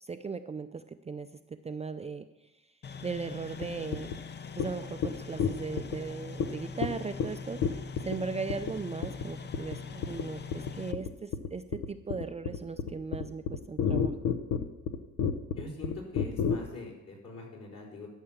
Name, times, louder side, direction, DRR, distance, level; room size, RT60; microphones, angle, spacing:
voice 1, 0.0-1.3 1.6-2.3 3.0-4.2 4.6-7.8 8.0-14.1, right 4 dB, 20° right, 8 dB, 0.4 m, -38 dB
sound 1, 2.8-10.9, left 5 dB, 35° left, 0.7 m, -42 dB
sound 2, 3.6-3.7 3.9-4.2 4.6-4.7 5.0-5.1 5.4-6.0 6.4-6.5 6.8-6.9 7.2-7.3 7.6-8.2 8.5-8.7 9.0-9.3 9.5-9.8 10.0-10.2 10.5-16.6, left 7 dB, 85° left, 0.9 m, -30 dB
voice 2, 15.6-18.1, left 3 dB, 55° left, -2 dB, 4.2 m, -43 dB
12.5 x 5.6 x 7.3 m, 1.0 s
cardioid pair, 90°, 30 cm